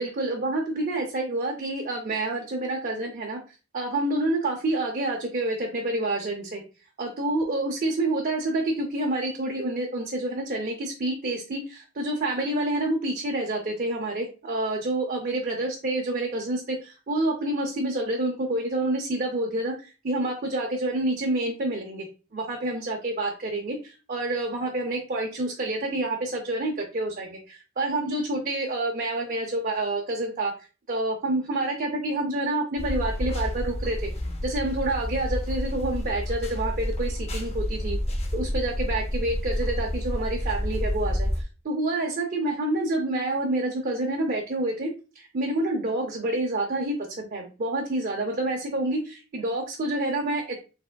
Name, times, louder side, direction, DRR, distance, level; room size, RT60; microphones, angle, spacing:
voice 1, 0.0-3.4 3.7-6.6 7.0-22.1 22.3-30.5 30.9-34.1 34.4-38.0 38.3-50.6, right 2 dB, 40° right, 1 dB, 0.6 m, -28 dB
sound 1, 32.8-41.4, left 1 dB, 30° left, 0.6 m, -29 dB
4.7 x 3.5 x 2.2 m, 0.34 s
head